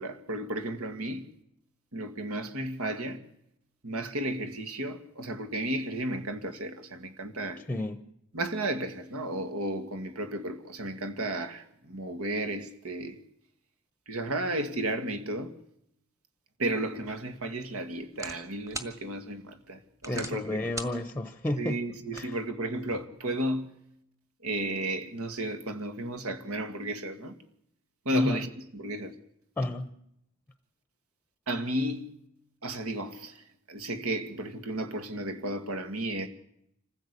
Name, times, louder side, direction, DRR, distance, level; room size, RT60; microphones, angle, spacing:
voice 1, 0.0-1.3 1.9-3.2 3.8-7.6 8.3-13.2 14.1-15.6 16.6-20.6 21.6-23.8 24.4-27.4 28.1-29.1 29.6-29.7 31.5-32.1 32.6-36.3, right 1 dB, 80° right, 2.2 m, -33 dB
voice 2, 7.7-8.1 20.1-21.8 22.1-22.4 28.1-28.4 29.6-29.9, left 1 dB, 10° left, 0.8 m, -32 dB
sound 1, 17.0-23.0, right 2 dB, 15° right, 1.8 m, -45 dB
26.0 x 15.5 x 8.4 m
head